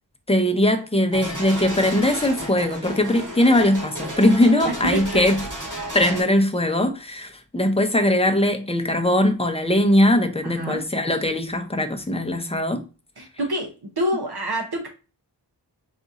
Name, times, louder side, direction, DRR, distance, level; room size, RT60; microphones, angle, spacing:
voice 1, 0.3-5.4 5.9-12.8, left 1 dB, 15° left, 0.7 m, -20 dB
sound 1, 1.1-6.2, right 1 dB, 45° right, 2.1 m, -33 dB
voice 2, 4.9-5.3 10.4-10.8 13.2-14.9, equal, 65° right, 0.9 m, -27 dB
4.1 x 2.6 x 3.6 m
wide cardioid pair, 45°, 42 cm